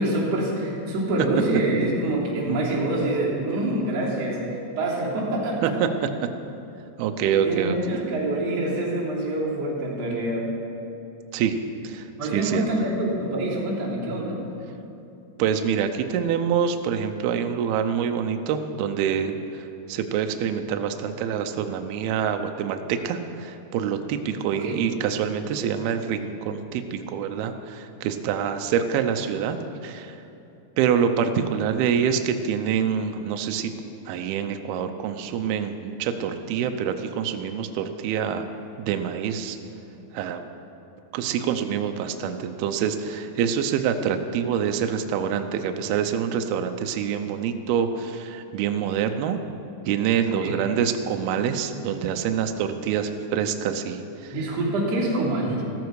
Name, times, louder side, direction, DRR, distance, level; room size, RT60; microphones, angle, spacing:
voice 1, 0.0-5.8 7.4-10.5 12.2-14.4 24.5-24.8 50.3-50.5 54.3-55.6, right 1 dB, 35° right, -7 dB, 3.8 m, -26 dB
voice 2, 7.0-8.0 11.3-11.6 11.8-12.1 12.3-12.6 15.4-19.4 19.9-30.2 30.8-33.7 34.1-38.5 38.8-39.6 40.1-40.5 41.1-49.4 49.9-54.3, right 8 dB, 85° right, 6 dB, 2.2 m, -26 dB
14.5 x 14.5 x 4.8 m, 2.8 s
omnidirectional pair, 5.3 m